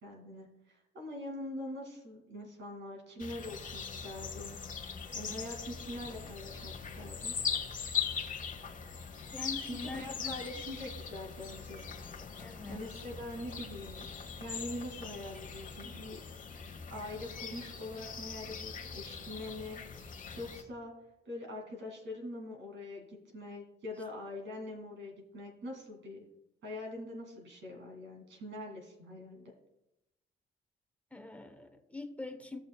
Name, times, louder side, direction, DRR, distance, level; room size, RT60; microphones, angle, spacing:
voice 1, 0.0-4.6 5.1-7.3 9.6-11.9 12.7-14.1 14.4-16.2 16.9-20.9 21.2-26.2 26.6-29.5, left 1 dB, 70° right, 1 dB, 2.6 m, -43 dB
sound 1, 3.2-20.6, left 6 dB, 40° left, 1.1 m, -41 dB
voice 2, 9.3-10.4 12.4-12.9 31.1-32.6, left 3 dB, 5° left, 6 dB, 1.0 m, -43 dB
15.5 x 6.3 x 2.3 m, 0.93 s
cardioid pair, 90°, 20 cm